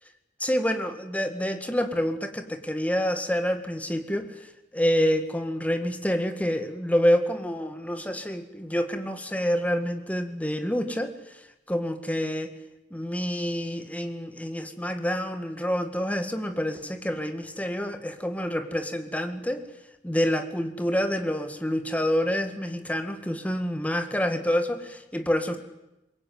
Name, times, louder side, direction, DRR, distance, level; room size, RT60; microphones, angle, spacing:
voice 1, 0.4-4.3 4.7-11.1 11.7-12.5 12.9-19.6 20.0-25.6, equal, 10° left, 7 dB, 2.0 m, -27 dB
24.0 x 22.0 x 9.5 m, 0.94 s
head